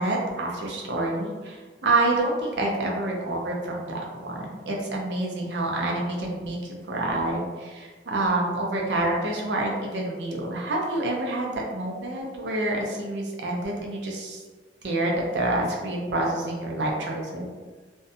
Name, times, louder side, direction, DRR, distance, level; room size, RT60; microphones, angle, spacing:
voice 1, 0.0-14.4 14.8-17.5, right 2 dB, 75° right, -1 dB, 0.6 m, -27 dB
2.6 x 2.1 x 2.6 m, 1.4 s
head